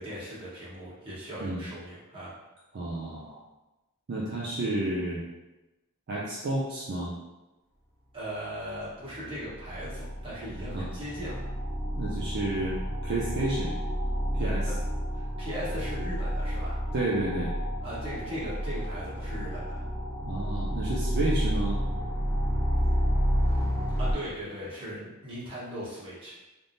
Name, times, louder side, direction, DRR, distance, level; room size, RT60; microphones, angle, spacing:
voice 1, 0.0-2.3 8.1-11.4 14.4-14.7 15.1-16.8 17.8-19.7 24.0-26.3, equal, 25° right, -10 dB, 1.1 m, -38 dB
voice 2, 2.7-3.4 4.1-5.2 6.1-7.1 10.7-10.9 11.9-13.7 14.4-14.7 16.9-17.5 20.2-21.8, right 2 dB, 50° right, -5 dB, 0.4 m, -31 dB
sound 1, 8.7-8.8 9.1-24.1, equal, 70° right, 1.0 m, -30 dB
3.4 x 2.0 x 2.6 m, 1.0 s
head